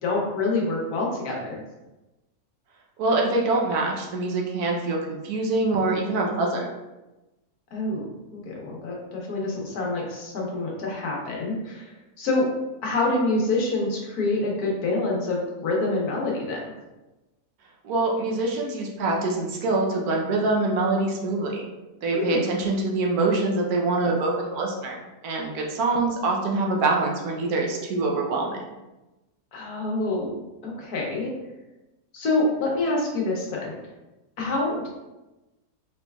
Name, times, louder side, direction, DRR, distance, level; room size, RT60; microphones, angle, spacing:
voice 1, 0.0-1.6 7.7-12.5 12.8-16.7 22.1-22.4 29.5-31.3 32.1-33.7 34.4-34.9, left 2 dB, 75° left, -2 dB, 1.5 m, -26 dB
voice 2, 3.0-6.7 17.8-21.7 22.0-28.6, right 2 dB, 75° right, 0 dB, 1.2 m, -25 dB
4.9 x 3.3 x 2.3 m, 1.0 s
omnidirectional pair, 1.6 m